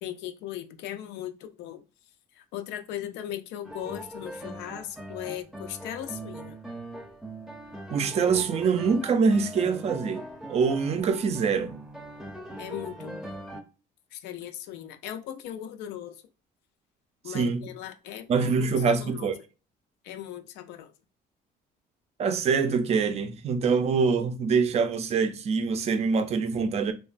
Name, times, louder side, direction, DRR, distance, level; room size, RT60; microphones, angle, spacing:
voice 1, 0.0-1.8 2.4-6.6 12.6-13.3 14.1-16.2 17.2-19.3 20.0-20.9, left 11 dB, 85° left, 0.4 m, -38 dB
sound 1, 3.6-13.6, right 1 dB, ahead, 0.7 m, -41 dB
voice 2, 7.9-10.2 10.5-11.7 17.3-17.7 18.3-19.4 22.2-26.9, right 5 dB, 40° right, 0.4 m, -24 dB
2.9 x 2.1 x 2.4 m
cardioid pair, 110°, 17 cm